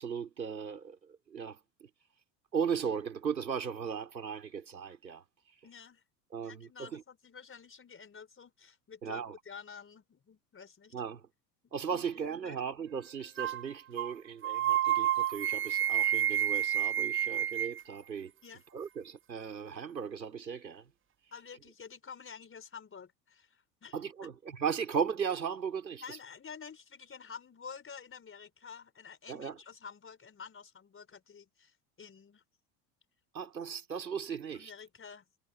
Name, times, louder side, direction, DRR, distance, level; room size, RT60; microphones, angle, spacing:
voice 1, 0.0-1.9 2.5-5.2 6.3-7.0 9.0-9.3 10.9-11.3 11.7-18.3 18.7-20.9 23.9-26.2 29.3-29.6 33.3-34.7, right 7 dB, 90° right, 4.8 m, -37 dB
voice 2, 5.6-6.0 6.4-10.9 11.9-12.6 18.4-18.6 21.3-24.3 25.9-32.4 34.5-35.2, left 6 dB, 25° left, 4.2 m, -50 dB
sound 1, 13.4-13.6 14.0-14.1 14.4-17.8, right 11 dB, 25° right, 0.9 m, -29 dB
hypercardioid pair, 75°, 49 cm